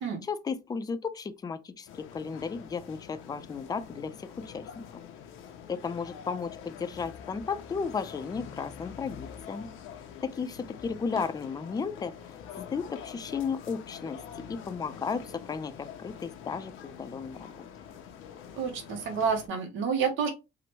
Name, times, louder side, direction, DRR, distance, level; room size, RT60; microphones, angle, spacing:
voice 1, 0.2-4.8 5.7-9.7 10.2-12.1 12.6-14.2 14.5-17.5, left 5 dB, 20° left, 0.3 m, -34 dB
sound 1, 1.9-19.5, left 8 dB, 90° left, 0.5 m, -46 dB
voice 2, 18.6-20.3, right 6 dB, 80° right, 0.7 m, -29 dB
2.9 x 2.1 x 2.8 m
cardioid pair, 90°, 20 cm